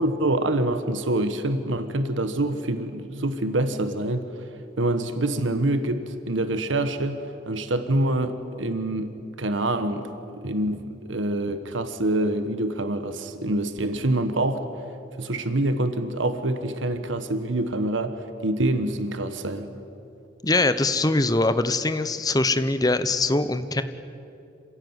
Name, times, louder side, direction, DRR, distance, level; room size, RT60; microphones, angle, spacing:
voice 1, 0.0-4.2 4.8-7.2 7.5-14.6 15.2-19.7, right 1 dB, 85° right, 10 dB, 1.3 m, -26 dB
voice 2, 20.4-23.8, left 2 dB, 20° left, 11 dB, 0.8 m, -22 dB
27.0 x 16.5 x 9.6 m, 2.7 s
head